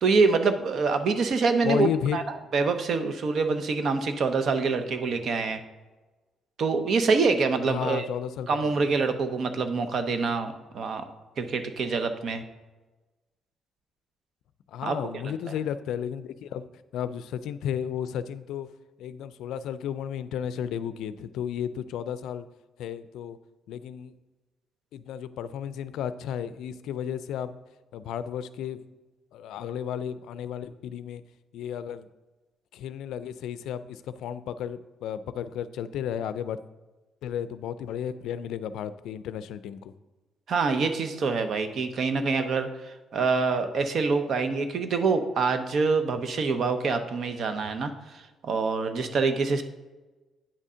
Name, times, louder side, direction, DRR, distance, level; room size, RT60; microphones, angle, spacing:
voice 1, 0.0-2.2 2.5-5.6 6.6-8.0 8.5-11.0 11.4-12.4 14.8-15.0 15.2-15.3 40.5-49.6, right 4 dB, 60° right, 8 dB, 0.8 m, -25 dB
voice 2, 1.6-2.2 7.7-8.6 14.7-16.7 16.9-18.7 19.0-22.5 22.8-23.4 23.7-24.1 24.9-27.5 27.9-28.8 29.3-31.2 31.5-32.1 32.7-36.6 37.2-39.9, left 9 dB, 85° left, 14 dB, 0.4 m, -33 dB
8.8 x 3.6 x 5.5 m, 1.2 s
cardioid pair, 90°, 0 cm